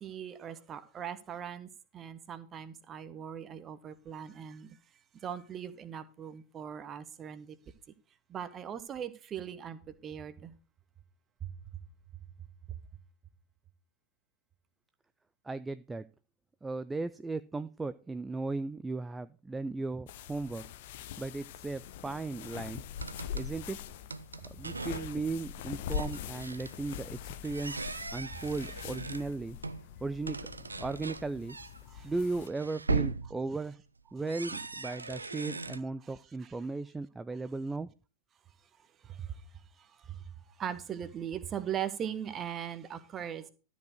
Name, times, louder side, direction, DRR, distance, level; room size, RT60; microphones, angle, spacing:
voice 1, 0.0-4.8 5.1-7.6 8.3-10.6 11.4-11.5 28.3-28.4 31.9-32.1 36.0-36.5 39.0-39.4 39.8-43.5, right 9 dB, 25° right, 1.2 m, -40 dB
voice 2, 15.4-16.1 16.6-20.6 21.2-22.8 23.3-23.8 24.6-27.9 28.1-29.6 30.0-30.4 30.8-31.6 32.0-33.8 34.1-37.9, right 3 dB, 10° right, 0.4 m, -36 dB
sound 1, 20.1-32.5, left 8 dB, 55° left, 0.8 m, -43 dB
sound 2, 23.0-23.6 24.1-25.2 25.5-25.6 25.9-27.0 27.4-29.9 30.3-35.8, right 4 dB, 80° right, 0.5 m, -38 dB
13.0 x 5.2 x 6.4 m
figure-of-eight pair, 90°, 0 cm